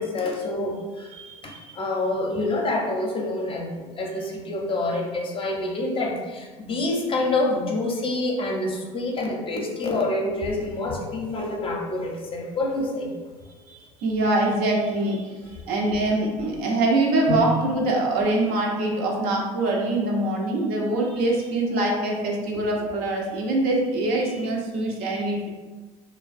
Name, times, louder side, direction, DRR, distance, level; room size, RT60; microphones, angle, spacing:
voice 1, 0.0-1.1 1.4-13.1 17.3-17.4, left 2 dB, 30° left, 0 dB, 0.5 m, -27 dB
voice 2, 1.1-1.7 13.7-15.2 15.7-25.5, right 2 dB, 65° right, -1 dB, 0.6 m, -24 dB
2.4 x 2.1 x 2.4 m, 1.3 s
hypercardioid pair, 70°, 17 cm